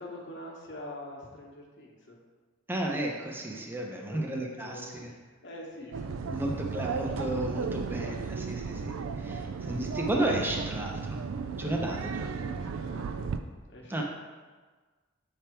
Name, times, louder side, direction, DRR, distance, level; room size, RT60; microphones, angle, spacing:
voice 1, 0.0-2.2 4.0-6.3 9.3-9.4 11.6-13.3 13.6-14.0, left 1 dB, 65° left, -2 dB, 1.1 m, -45 dB
voice 2, 2.7-4.7 6.3-11.2 11.6-12.3 13.9-14.0, right 1 dB, 10° right, -1 dB, 0.6 m, -33 dB
sound 1, 5.9-13.4, right 5 dB, 90° right, 0.4 m, -35 dB
7.2 x 3.3 x 4.4 m, 1.4 s
head